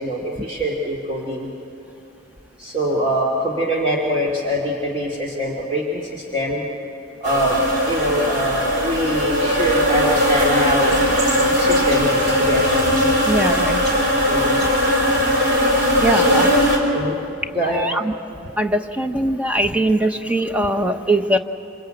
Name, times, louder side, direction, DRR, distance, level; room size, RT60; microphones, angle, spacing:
voice 1, 0.0-1.5 2.6-6.6 7.2-7.6 7.9-11.0 11.5-12.8 14.3-14.6 16.1-16.4 16.9-17.2 17.5-17.9, equal, 30° right, -4 dB, 2.6 m, -23 dB
sound 1, 7.2-16.8, left 1 dB, 55° right, 4.4 m, -19 dB
voice 2, 13.3-13.8 16.0-16.5 17.8-18.0 18.6-21.4, right 1 dB, 5° right, 6 dB, 0.9 m, -20 dB
27.0 x 26.0 x 7.9 m, 2.7 s
head